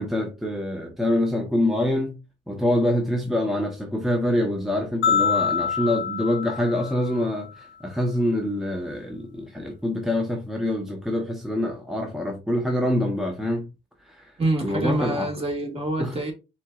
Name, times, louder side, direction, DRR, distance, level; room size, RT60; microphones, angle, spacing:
voice 1, 0.0-2.1 2.5-13.7 14.1-14.3 14.6-15.3 16.0-16.2, left 1 dB, ahead, 0.8 m, -25 dB
sound 1, 5.0-7.4, left 7 dB, 70° left, 0.5 m, -25 dB
voice 2, 14.4-16.3, right 1 dB, 30° right, 1.6 m, -26 dB
4.3 x 3.9 x 2.3 m
cardioid pair, 90°, 20 cm